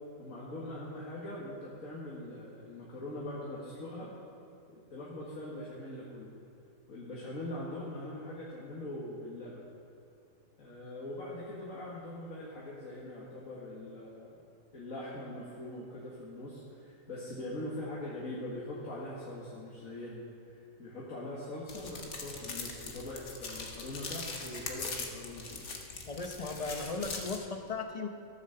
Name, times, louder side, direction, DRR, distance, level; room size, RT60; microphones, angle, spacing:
voice 1, 0.2-4.1 4.7-6.3 6.9-9.7 10.6-14.4 14.7-20.2 20.5-25.7, left 1 dB, 75° left, -6 dB, 2.1 m, -42 dB
sound 1, 21.7-27.4, left 4 dB, 55° left, 1.5 m, -41 dB
voice 2, 26.1-28.1, left 4 dB, 30° left, 5 dB, 0.8 m, -37 dB
14.0 x 7.1 x 6.8 m, 2.6 s
omnidirectional pair, 1.4 m